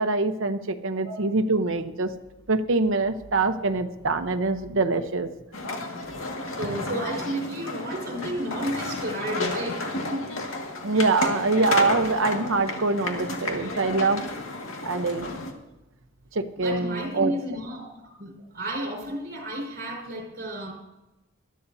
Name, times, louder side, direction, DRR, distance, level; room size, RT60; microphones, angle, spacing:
voice 1, 0.0-2.1 2.5-5.3 10.8-14.2 14.8-15.4 16.3-17.3, right 3 dB, 65° right, 7 dB, 1.0 m, -24 dB
sound 1, 5.5-15.5, left 2 dB, 75° left, 2.0 m, -32 dB
voice 2, 6.6-9.8 10.1-10.3 16.6-17.9 18.2-20.7, right 1 dB, 45° right, -1 dB, 5.1 m, -32 dB
21.0 x 13.5 x 2.8 m, 1.0 s
head